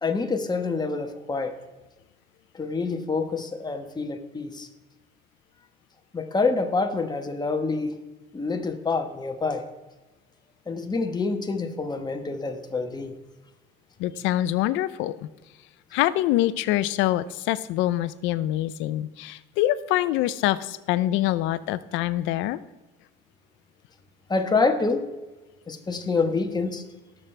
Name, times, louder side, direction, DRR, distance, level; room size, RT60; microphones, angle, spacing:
voice 1, 0.0-1.5 2.6-4.7 6.1-7.9 8.3-9.6 10.7-13.1 24.3-25.1 25.7-26.8, left 4 dB, 20° left, 6 dB, 1.3 m, -27 dB
voice 2, 14.0-15.3 15.9-22.6, left 14 dB, 85° left, 16 dB, 0.6 m, -25 dB
19.0 x 7.3 x 3.4 m, 1.1 s
cardioid pair, 100°, 19 cm